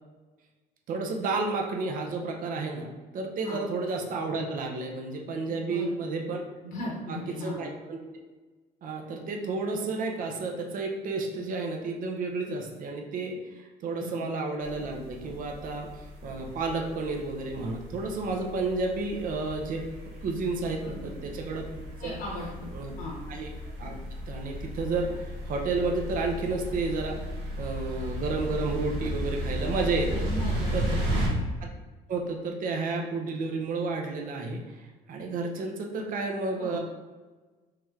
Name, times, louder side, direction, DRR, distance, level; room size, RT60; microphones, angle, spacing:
voice 1, 0.9-6.4 7.3-8.1 8.8-19.8 20.2-22.2 22.7-22.9 23.3-23.5 23.8-23.9 24.3-27.2 27.6-30.3 30.7-30.8 31.6-31.7 32.1-36.8, right 3 dB, 55° right, 2 dB, 0.6 m, -31 dB
voice 2, 5.5-6.2 6.6-7.7 14.0-14.2 20.8-21.1 22.0-22.7 23.0-23.2 30.1-31.2 36.6-36.8, left 2 dB, 55° left, -4 dB, 0.8 m, -38 dB
sound 1, 14.6-31.3, equal, 85° right, 0.9 m, -35 dB
3.1 x 2.9 x 3.5 m, 1.3 s
cardioid pair, 110°, 17 cm